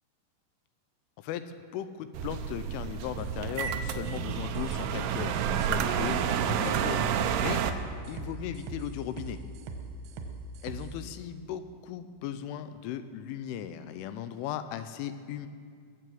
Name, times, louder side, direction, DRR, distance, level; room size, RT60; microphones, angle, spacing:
voice 1, 1.2-7.1 7.4-7.6 8.1-9.4 10.6-15.5, left 10 dB, 85° left, 10 dB, 3.1 m, -37 dB
sound 1, 2.1-7.7, right 8 dB, 90° right, 2.3 m, -30 dB
sound 2, 3.2-11.0, right 4 dB, 75° right, 2.7 m, -41 dB
21.0 x 7.9 x 7.7 m, 2.2 s
omnidirectional pair, 5.6 m